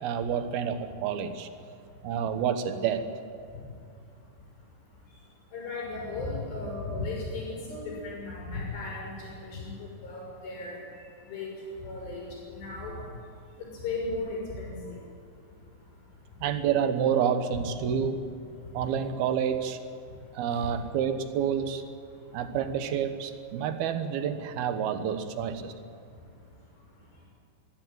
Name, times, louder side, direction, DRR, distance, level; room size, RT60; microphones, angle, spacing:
voice 1, 0.0-1.5 2.0-3.0 16.4-18.2 18.7-19.8 20.3-21.8 22.3-25.7, right 8 dB, 70° right, 9 dB, 2.8 m, -28 dB
voice 2, 5.5-10.8 11.2-11.5 11.8-12.2 12.5-13.0 13.6-15.0 17.8-17.9, left 3 dB, 85° left, -4 dB, 8.1 m, -36 dB
23.5 x 16.0 x 9.2 m, 2.4 s
omnidirectional pair, 4.8 m